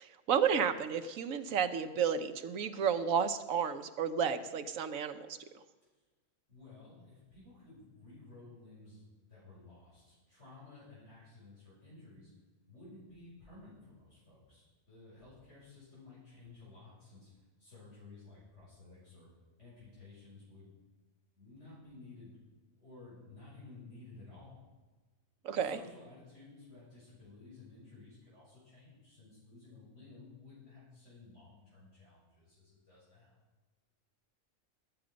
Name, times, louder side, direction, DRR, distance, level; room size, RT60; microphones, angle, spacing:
voice 1, 0.0-5.4 25.4-25.8, right 7 dB, 85° right, 9 dB, 1.3 m, -32 dB
voice 2, 6.5-12.3 12.7-19.3 19.6-20.7 21.3-22.4 22.7-24.6 25.5-33.4, left 3 dB, 60° left, -9 dB, 6.7 m, -55 dB
19.5 x 8.9 x 5.2 m, 1.3 s
omnidirectional pair, 1.4 m